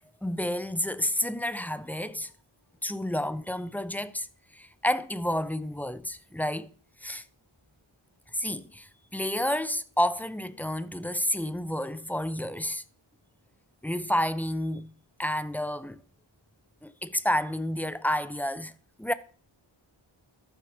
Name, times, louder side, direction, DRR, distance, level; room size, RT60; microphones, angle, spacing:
voice 1, 0.2-2.3 2.8-4.3 4.5-6.7 7.0-7.2 8.3-12.8 13.8-14.9 15.2-16.0 16.8-18.7 19.0-19.1, left 1 dB, 5° left, 0.4 m, -30 dB
13.5 x 6.0 x 3.5 m
wide cardioid pair, 65°, 48 cm